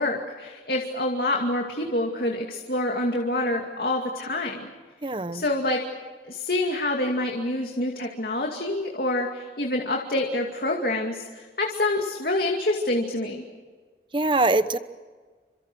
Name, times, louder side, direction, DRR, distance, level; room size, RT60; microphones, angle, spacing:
voice 1, 0.0-4.7 5.3-5.9 6.3-13.4, left 1 dB, 55° left, 1 dB, 2.4 m, -27 dB
voice 2, 5.0-5.4 14.1-14.8, right 2 dB, 30° right, 13 dB, 0.9 m, -23 dB
29.0 x 26.0 x 6.3 m, 1.5 s
head